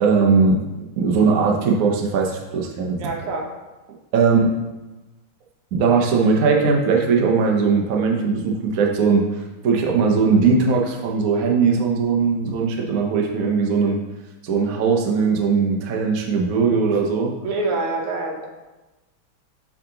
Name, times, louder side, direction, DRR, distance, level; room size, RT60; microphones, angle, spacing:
voice 1, 0.0-0.6 1.0-3.0 4.1-4.5 5.7-9.2 9.6-14.0 14.4-17.3, right 5 dB, 60° right, 1 dB, 0.9 m, -19 dB
voice 2, 3.0-3.5 17.4-18.5, right 3 dB, 85° right, 1 dB, 1.9 m, -25 dB
7.2 x 3.8 x 3.8 m, 1.1 s
omnidirectional pair, 2.4 m